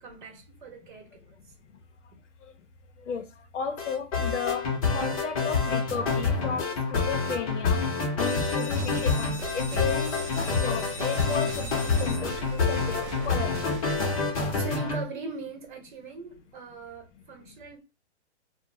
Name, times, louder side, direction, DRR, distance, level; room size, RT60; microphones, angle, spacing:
voice 1, 0.0-1.4 14.1-17.8, right 3 dB, 45° right, 0.9 m, -41 dB
voice 2, 3.5-4.7 4.9-7.8 8.2-13.5, left 6 dB, 90° left, 0.6 m, -34 dB
sound 1, 3.8-15.0, left 4 dB, 30° left, 0.7 m, -27 dB
sound 2, 8.2-13.6, left 2 dB, 10° right, 0.8 m, -42 dB
sound 3, 8.7-14.1, right 6 dB, 70° right, 0.5 m, -39 dB
2.5 x 2.1 x 2.9 m
hypercardioid pair, 155°, 35 cm